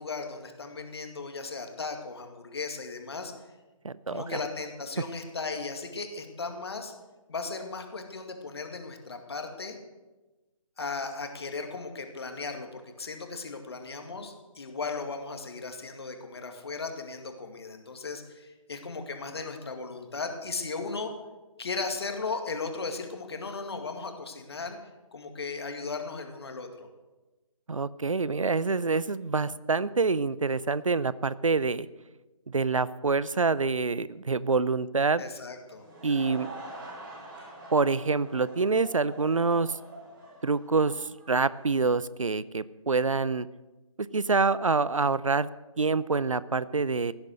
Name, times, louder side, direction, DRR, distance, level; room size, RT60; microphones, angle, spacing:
voice 1, 0.0-3.3 4.1-6.9 7.3-9.8 10.8-21.1 21.6-24.8 25.1-26.9 35.2-35.9, left 4 dB, 50° left, 5 dB, 2.3 m, -36 dB
voice 2, 3.8-4.4 27.7-31.9 32.5-35.2 36.0-36.5 37.7-39.8 40.4-43.5 44.0-45.5 45.8-47.1, right 4 dB, 70° right, 18 dB, 0.6 m, -26 dB
Laughter / Crowd, 35.6-41.9, right 2 dB, 40° right, 6.4 m, -45 dB
16.5 x 9.8 x 6.5 m, 1.2 s
figure-of-eight pair, 150°, 18 cm